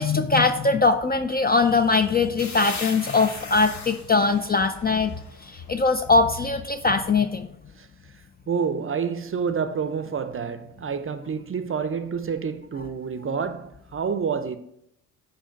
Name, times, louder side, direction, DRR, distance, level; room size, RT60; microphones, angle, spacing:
voice 1, 0.0-5.1 5.5-7.5, left 4 dB, 25° left, 0.4 m, -21 dB
sound 1, 2.4-6.0, left 4 dB, 40° left, 1.2 m, -39 dB
voice 2, 8.5-14.6, right 6 dB, 30° right, 0.6 m, -28 dB
5.1 x 5.0 x 5.1 m
hypercardioid pair, 55°, 42 cm